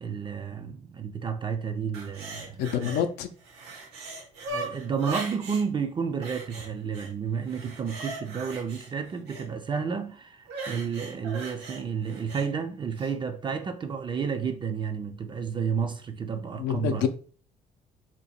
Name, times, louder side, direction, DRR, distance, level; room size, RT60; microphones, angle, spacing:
voice 1, 0.0-2.6 4.5-17.1, right 6 dB, 30° right, 0.4 m, -31 dB
sound 1, 1.9-3.0 3.4-5.6 6.2-7.1 7.4-9.5 10.5-12.5 13.0-13.1, right 3 dB, 85° right, 1.1 m, -39 dB
voice 2, 2.6-3.3 16.6-17.1, left 9 dB, 85° left, 0.5 m, -27 dB
2.8 x 2.2 x 4.2 m
cardioid pair, 110°, 17 cm